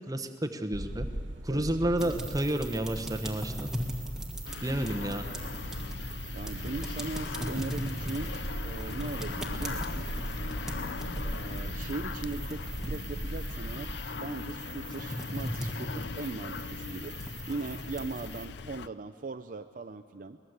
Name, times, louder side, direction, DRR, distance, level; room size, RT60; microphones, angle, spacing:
voice 1, 0.1-1.1 1.4-3.7 4.6-5.3, right 1 dB, 20° right, 6 dB, 1.1 m, -30 dB
sound 1, 0.7-13.9, right 1 dB, 80° right, 1.4 m, -39 dB
voice 2, 1.5-2.1 6.3-10.1 11.2-17.2 17.5-20.4, right 3 dB, 45° right, 8 dB, 0.5 m, -39 dB
sound 2, 2.0-18.4, equal, 5° right, 1.9 m, -40 dB
sound 3, 4.4-18.9, left 5 dB, 65° left, 0.5 m, -40 dB
23.0 x 19.5 x 8.1 m, 2.3 s
head